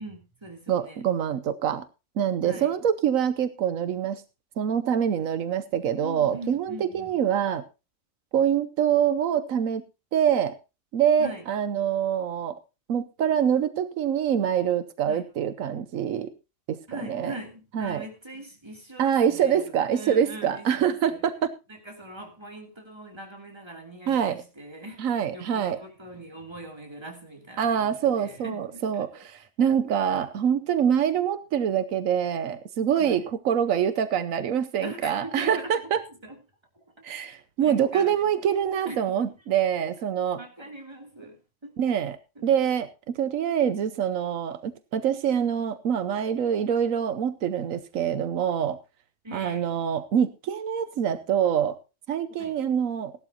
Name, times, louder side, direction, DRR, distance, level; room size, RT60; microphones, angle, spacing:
voice 1, 0.0-1.0 2.4-2.7 6.0-7.2 11.2-11.5 15.1-15.2 16.9-21.2 21.7-29.2 33.0-33.3 34.8-35.7 36.1-36.4 36.7-37.2 37.6-38.1 38.6-39.0 39.2-39.3 40.4-41.8 42.3-42.5 49.2-49.7 52.3-52.6, right 1 dB, 20° right, 2.8 m, -42 dB
voice 2, 0.7-1.8 2.2-4.2 4.6-7.6 8.3-9.8 10.1-10.6 10.9-12.6 12.9-16.3 16.7-17.3 17.7-18.0 19.0-21.5 24.1-24.4 25.0-25.8 27.6-36.0 37.0-40.4 41.8-42.2 42.4-48.8 49.3-51.8 52.1-53.1, right 8 dB, 90° right, 1.2 m, -25 dB
16.5 x 12.0 x 2.9 m
omnidirectional pair, 1.4 m